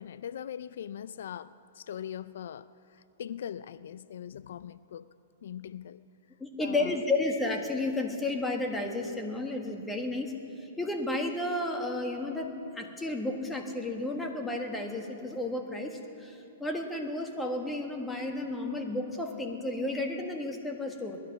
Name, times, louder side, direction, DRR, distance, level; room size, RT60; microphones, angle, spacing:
voice 1, 0.0-5.1 5.4-6.0 6.6-7.0, left 9 dB, 70° left, 16 dB, 0.3 m, -41 dB
voice 2, 6.4-10.3 10.8-21.2, left 2 dB, 10° left, 2 dB, 1.5 m, -32 dB
18.5 x 12.0 x 6.0 m, 2.9 s
hypercardioid pair, 135°, 0 cm